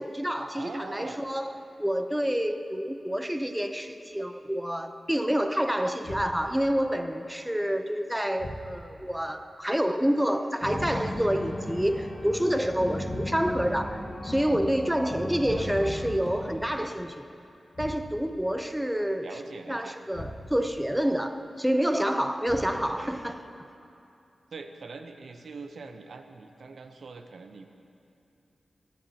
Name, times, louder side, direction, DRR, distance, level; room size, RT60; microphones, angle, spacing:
voice 1, 0.0-17.3 17.8-19.4 19.7-23.4, equal, 5° right, 8 dB, 0.5 m, -28 dB
voice 2, 0.5-1.2 15.6-16.0 19.2-20.0 22.7-23.1 24.5-27.7, right 4 dB, 75° right, 6 dB, 0.7 m, -43 dB
sound 1, 6.0-6.7 8.4-9.0 10.7-11.4 13.0-13.7 15.4-16.0 17.7-18.4 20.1-20.8 22.4-23.1, left 1 dB, 50° left, 1.7 m, -42 dB
sound 2, 10.6-16.8, left 1 dB, 35° left, 1.3 m, -36 dB
21.0 x 10.5 x 2.8 m, 2.7 s
wide cardioid pair, 85°, 0 cm